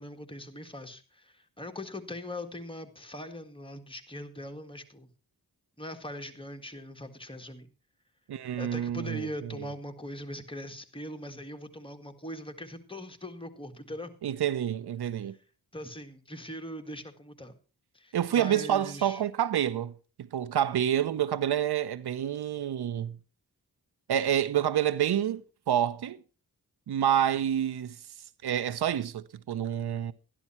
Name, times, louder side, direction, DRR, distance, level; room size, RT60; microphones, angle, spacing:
voice 1, 0.0-5.1 5.8-7.7 8.6-14.1 15.2-15.3 15.7-17.5 17.9-19.2, equal, 15° left, 1.8 m, -41 dB
voice 2, 8.3-9.3 9.6-9.7 14.2-15.4 18.1-19.9 20.2-23.2 24.1-26.2 26.9-28.0 28.4-30.1, right 10 dB, 75° right, 0.7 m, -28 dB
13.0 x 11.0 x 4.4 m
cardioid pair, 65°, 39 cm